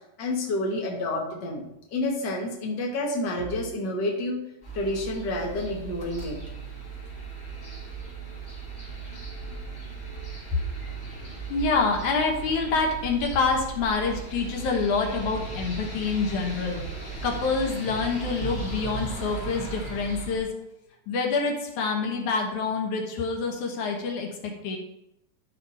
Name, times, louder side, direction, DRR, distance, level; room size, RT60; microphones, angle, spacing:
voice 1, 0.2-4.4 4.7-6.4, left 1 dB, 40° left, -1 dB, 1.5 m, -29 dB
sound 1, 4.6-20.4, right 4 dB, 20° left, 2.2 m, -37 dB
voice 2, 11.5-20.5 21.1-24.8, left 4 dB, 65° left, 1 dB, 2.1 m, -27 dB
12.5 x 5.0 x 4.3 m, 0.82 s
omnidirectional pair, 4.7 m